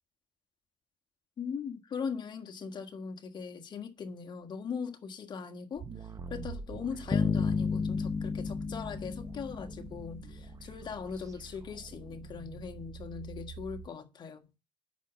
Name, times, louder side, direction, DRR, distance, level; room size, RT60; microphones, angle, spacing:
voice 1, 1.4-5.8 6.3-14.4, left 6 dB, 40° left, 1.6 m, -40 dB
sound 1, 5.8-13.9, right 5 dB, 30° right, 1.2 m, -46 dB
sound 2, 7.1-10.5, left 5 dB, 20° left, 0.6 m, -32 dB
8.2 x 6.2 x 7.5 m
cardioid pair, 100°, 12 cm